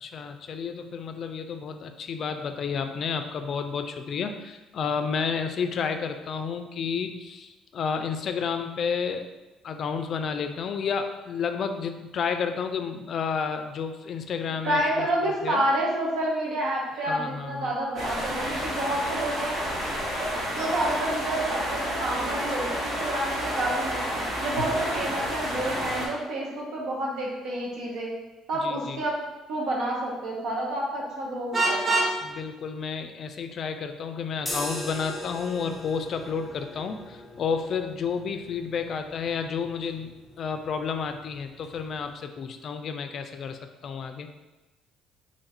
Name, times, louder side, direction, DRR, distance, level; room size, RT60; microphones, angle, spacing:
voice 1, 0.0-9.3 9.6-15.6 17.1-17.8 28.6-29.0 32.2-40.1 40.4-44.3, left 6 dB, 55° left, 7 dB, 0.3 m, -31 dB
voice 2, 14.6-19.6 20.5-24.1 24.4-28.1 28.5-29.2 29.5-32.0, right 1 dB, 75° right, -3 dB, 1.0 m, -29 dB
sound 1, 18.0-26.1, equal, 55° right, 1.3 m, -30 dB
Vehicle horn car horn honking, 31.5-32.2, right 2 dB, 30° right, 0.8 m, -23 dB
sound 2, 34.4-42.2, left 1 dB, 15° left, 1.0 m, -41 dB
3.0 x 2.5 x 4.2 m, 1.1 s
cardioid pair, 95°, 0 cm